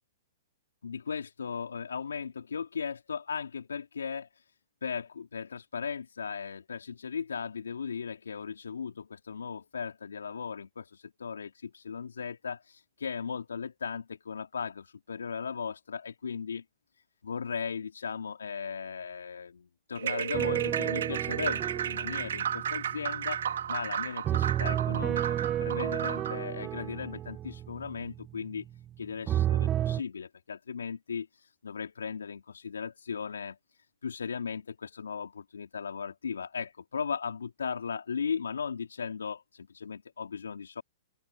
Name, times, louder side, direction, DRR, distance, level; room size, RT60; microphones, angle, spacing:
voice 1, 0.8-4.4 4.8-16.6 17.2-28.7 29.0-33.6 34.0-40.8, left 6 dB, 80° left, 3.2 m, -37 dB
sound 1, 20.0-26.4, right 9 dB, 70° right, 2.8 m, -33 dB
sound 2, 20.3-23.7 24.2-28.9 29.3-30.0, right 11 dB, 25° right, 2.2 m, -31 dB
open air
hypercardioid pair, 115°, 0 cm